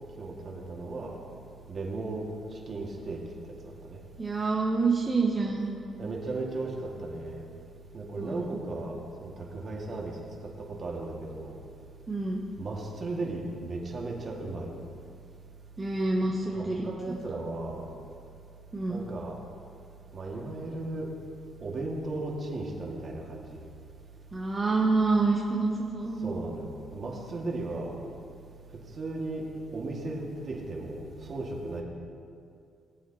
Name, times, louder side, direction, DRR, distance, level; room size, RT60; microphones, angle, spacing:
voice 1, 0.2-1.2 1.7-2.3 2.7-3.2 3.6-4.0 6.0-7.4 7.9-11.6 12.6-14.7 16.4-17.8 18.9-19.4 20.1-21.1 21.6-23.6 26.2-27.9 28.9-31.8, right 2 dB, 45° right, -2 dB, 2.2 m, -36 dB
voice 2, 4.2-5.7 8.2-8.6 12.1-12.4 15.8-17.2 18.7-19.0 24.3-26.3, right 3 dB, 25° right, -3 dB, 1.1 m, -27 dB
19.5 x 7.9 x 3.1 m, 2.4 s
cardioid pair, 90°, 0 cm